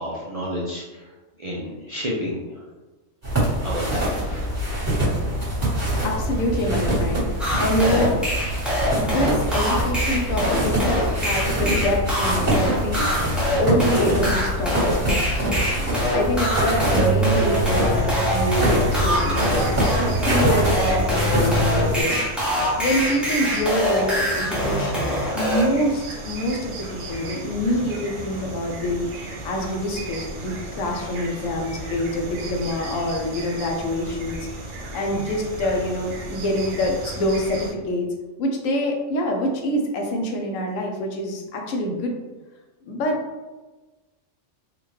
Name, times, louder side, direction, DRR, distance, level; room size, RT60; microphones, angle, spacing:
voice 1, 0.0-2.6 3.6-4.5, equal, 55° right, -6 dB, 0.4 m, -31 dB
sound 1, 3.2-22.0, right 1 dB, 15° right, 1.3 m, -24 dB
voice 2, 6.0-7.2 7.6-8.2 9.0-13.1 13.6-19.9 20.2-22.2 22.8-29.1 29.4-34.7 34.9-38.1 38.4-42.1 42.8-43.2, left 1 dB, 85° left, 2 dB, 1.1 m, -26 dB
sound 2, 7.4-25.6, equal, ahead, 0.6 m, -24 dB
sound 3, 17.9-37.7, right 2 dB, 80° right, 1.1 m, -35 dB
3.7 x 2.5 x 3.1 m, 1.2 s
omnidirectional pair, 1.3 m